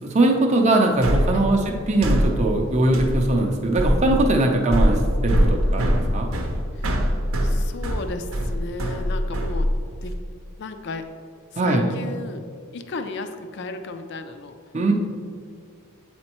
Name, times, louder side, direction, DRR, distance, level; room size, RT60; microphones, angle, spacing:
voice 1, 0.0-1.6 1.9-6.3 11.6-11.9 14.7-14.9, right 2 dB, 30° right, 1 dB, 0.5 m, -21 dB
sound 1, 1.0-10.1, equal, 65° right, 0.7 m, -23 dB
voice 2, 7.4-9.7 10.0-10.2 10.6-11.1 11.5-12.4 12.7-14.6, left 3 dB, 50° left, 8 dB, 0.4 m, -34 dB
8.5 x 4.3 x 3.0 m, 2.1 s
head